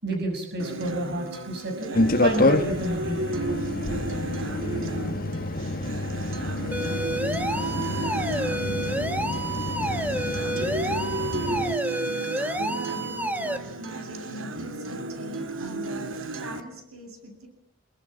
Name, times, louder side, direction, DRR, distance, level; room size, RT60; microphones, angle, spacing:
voice 1, 0.0-3.3 10.2-10.3, right 1 dB, 50° right, 4 dB, 6.2 m, -30 dB
Acoustic guitar, 0.6-16.6, right 2 dB, 65° right, 2.3 m, -34 dB
sound 1, 1.9-11.8, left 2 dB, 40° left, 1.5 m, -28 dB
sound 2, 6.7-13.6, right 1 dB, 5° right, 1.5 m, -30 dB
voice 2, 12.7-17.5, equal, 85° right, 5 dB, 7.8 m, -41 dB
26.5 x 23.5 x 8.8 m, 0.71 s
head